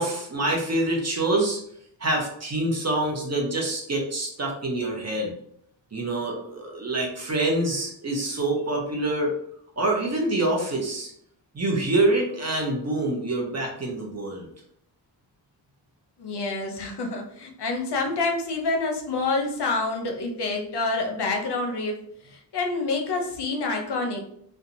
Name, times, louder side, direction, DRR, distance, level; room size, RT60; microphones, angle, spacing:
voice 1, 0.0-1.6 2.0-5.3 5.9-9.3 9.8-11.1 11.5-14.5, right 2 dB, 35° right, -1 dB, 0.8 m, -26 dB
voice 2, 16.2-22.0 22.2-24.2, left 3 dB, 65° left, 2 dB, 0.7 m, -27 dB
2.8 x 2.2 x 2.5 m, 0.69 s
cardioid pair, 65°, 44 cm